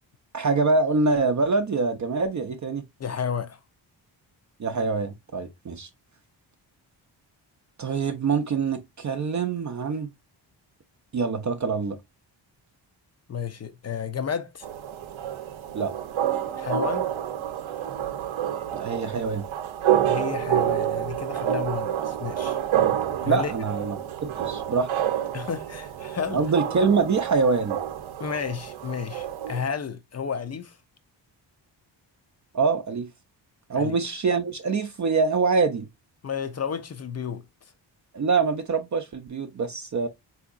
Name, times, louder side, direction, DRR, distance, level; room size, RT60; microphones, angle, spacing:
voice 1, 0.3-2.8 4.6-5.9 7.8-10.1 11.1-12.0 15.7-15.9 18.7-19.5 23.3-24.9 26.3-27.8 32.5-33.1 33.7-35.9 38.1-40.1, right 4 dB, 40° right, 0.5 m, -25 dB
voice 2, 3.0-3.6 13.3-14.7 16.5-17.1 20.1-22.6 23.2-23.5 25.3-26.4 28.2-30.8 33.7-34.0 36.2-37.4, left 7 dB, 35° left, 0.5 m, -31 dB
sound 1, 14.6-29.6, right 10 dB, 75° right, 0.7 m, -28 dB
3.5 x 2.8 x 2.4 m
cardioid pair, 65°, 47 cm